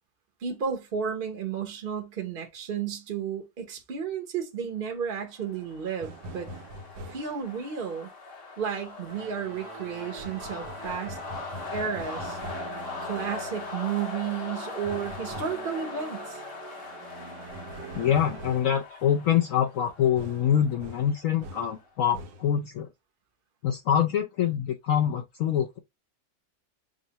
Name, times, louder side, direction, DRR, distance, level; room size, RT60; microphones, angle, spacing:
voice 1, 0.4-6.5 7.1-8.1 8.6-11.2 11.7-12.4 13.0-16.4, right 7 dB, 45° right, 0.7 m, -32 dB
sound 1, 5.2-21.8, left 4 dB, 55° left, 1.1 m, -41 dB
sound 2, 6.0-7.4 10.2-12.8 14.8-15.7 17.5-18.8 20.1-21.8 22.1-22.5, equal, 85° right, 1.4 m, -43 dB
sound 3, 9.1-18.6, right 6 dB, 70° right, 1.3 m, -45 dB
voice 2, 18.0-22.9 23.6-25.8, left 9 dB, 70° left, 0.8 m, -25 dB
6.3 x 2.1 x 2.8 m
omnidirectional pair, 1.9 m